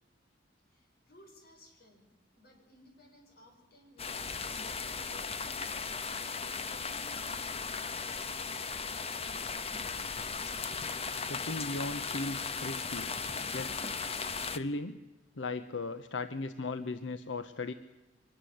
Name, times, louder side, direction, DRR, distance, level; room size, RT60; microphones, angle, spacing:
voice 1, 0.7-2.0 2.3-5.5 6.1-8.5, left 1 dB, 55° left, 3 dB, 6.5 m, -59 dB
sound 1, 4.0-14.6, left 5 dB, 35° left, 1.1 m, -37 dB
voice 2, 11.3-13.1 13.5-13.7 14.5-15.0 15.4-17.7, left 3 dB, 85° left, 11 dB, 0.9 m, -37 dB
24.0 x 20.0 x 7.9 m, 1.1 s
head